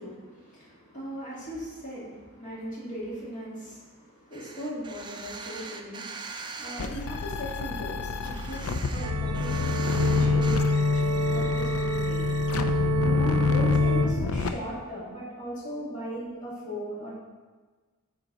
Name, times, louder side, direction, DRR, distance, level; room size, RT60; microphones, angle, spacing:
voice 1, 0.0-12.4 13.0-17.1, equal, 35° left, -7 dB, 2.4 m, -38 dB
sound 1, 4.3-6.9 7.4-10.6, right 4 dB, 20° right, 0.5 m, -41 dB
sound 2, 6.8-14.5, left 4 dB, 70° left, 0.5 m, -32 dB
sound 3, 9.0-14.1, left 2 dB, 80° right, 0.6 m, -25 dB
8.9 x 4.7 x 4.0 m, 1.4 s
head